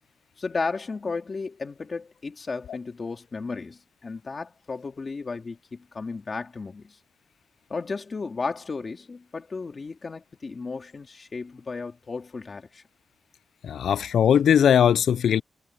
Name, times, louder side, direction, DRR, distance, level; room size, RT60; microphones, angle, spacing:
voice 1, 0.4-7.0 7.7-12.8, left 4 dB, 30° left, 2.9 m, -34 dB
voice 2, 13.6-15.4, left 8 dB, 75° left, 0.3 m, -19 dB
wide cardioid pair, 175°, 0 cm